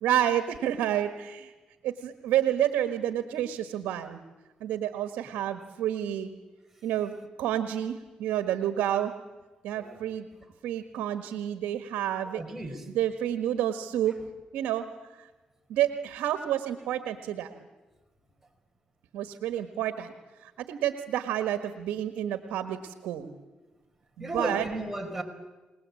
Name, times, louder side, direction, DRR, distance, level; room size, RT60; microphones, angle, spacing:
voice 1, 0.0-1.5 1.8-4.2 4.6-6.3 6.8-9.1 9.6-10.3 10.6-12.4 12.9-14.1 14.5-14.8 15.7-17.6 19.1-20.1 20.4-23.3 24.2-24.7, right 11 dB, 90° right, 8 dB, 1.5 m, -29 dB
voice 2, 12.3-12.8 24.2-25.2, right 1 dB, 10° right, 3 dB, 5.0 m, -34 dB
30.0 x 19.5 x 8.5 m, 1.2 s
cardioid pair, 65°, 3 cm